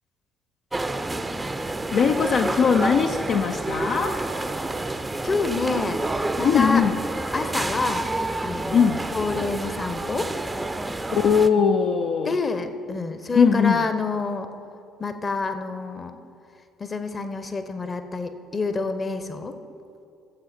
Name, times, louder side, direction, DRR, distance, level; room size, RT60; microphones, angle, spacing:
sound 1, 0.7-11.5, right 2 dB, 15° right, 0.6 m, -29 dB
voice 1, 1.9-4.2 6.4-7.0 8.7-9.1 11.1-12.3 13.3-13.9, left 6 dB, 55° left, 3 dB, 0.5 m, -20 dB
voice 2, 5.2-6.0 6.4-6.8 7.3-8.1 8.4-10.3 11.6-11.7 12.3-14.5 15.0-16.1 16.8-19.6, left 3 dB, 30° left, 9 dB, 0.9 m, -28 dB
16.0 x 7.7 x 4.4 m, 2.5 s
figure-of-eight pair, 50°, 0 cm